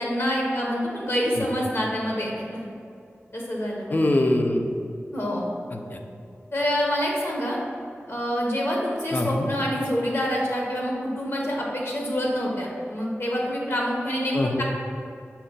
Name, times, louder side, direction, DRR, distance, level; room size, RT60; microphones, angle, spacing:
voice 1, 0.0-2.6 3.3-4.0 5.1-5.5 6.5-7.6 8.1-14.6, equal, 55° left, -3 dB, 0.8 m, -26 dB
voice 2, 3.9-4.7 5.7-6.0 9.1-9.5 14.3-14.6, left 1 dB, 35° left, 3 dB, 0.4 m, -23 dB
5.6 x 2.1 x 3.9 m, 2.4 s
wide cardioid pair, 65°, 5 cm